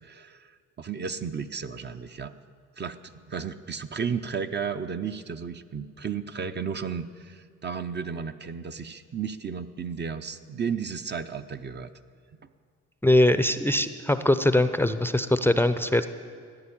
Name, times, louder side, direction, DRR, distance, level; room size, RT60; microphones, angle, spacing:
voice 1, 0.0-2.3 2.8-11.9, right 6 dB, 35° right, 8 dB, 0.7 m, -33 dB
voice 2, 13.0-16.1, left 1 dB, 5° left, 11 dB, 0.6 m, -22 dB
14.5 x 10.0 x 8.6 m, 2.1 s
cardioid pair, 90°, 30 cm